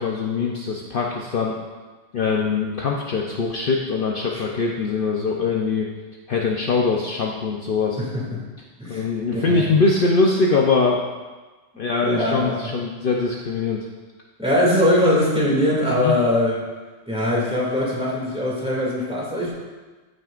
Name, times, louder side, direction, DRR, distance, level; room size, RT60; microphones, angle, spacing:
voice 1, 0.0-1.6 2.1-5.9 6.3-8.0 8.9-11.0 11.8-13.9 16.0-16.1, left 4 dB, 55° left, -1 dB, 0.8 m, -22 dB
voice 2, 8.8-9.6 12.0-12.7 14.4-16.6 17.1-19.5, left 1 dB, 5° right, -6 dB, 2.3 m, -21 dB
13.5 x 6.4 x 2.5 m, 1.3 s
omnidirectional pair, 1.2 m